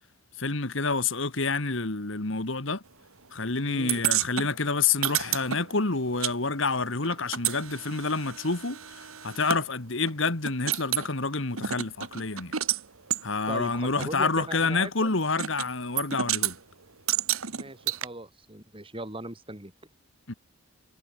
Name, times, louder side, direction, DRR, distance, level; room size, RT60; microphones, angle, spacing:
voice 1, 0.4-2.8 3.3-12.5 13.2-16.6 20.3-20.4, left 4 dB, 60° left, 1.8 m, -28 dB
voice 2, 3.6-4.0 13.5-15.1 17.5-19.7, right 1 dB, 25° right, 2.9 m, -39 dB
sound 1, 3.9-6.4 6.6-9.6 10.1-10.2 10.4-11.1 11.6-12.8 13.1-13.2 14.0-14.1 15.4-15.7 16.0-16.5 17.1-18.1, right 11 dB, 80° right, 1.9 m, -30 dB
head